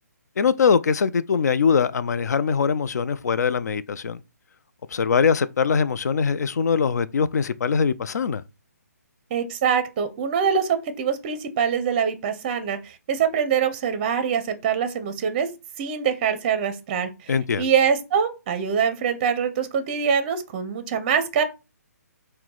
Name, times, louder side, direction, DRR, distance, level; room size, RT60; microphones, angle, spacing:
voice 1, 0.4-4.2 4.9-8.4 17.3-17.6, left 6 dB, 70° left, 0.4 m, -22 dB
voice 2, 9.3-15.5 15.8-21.4, right 7 dB, 30° right, 0.5 m, -24 dB
4.5 x 2.1 x 3.8 m
hypercardioid pair, 150°, 9 cm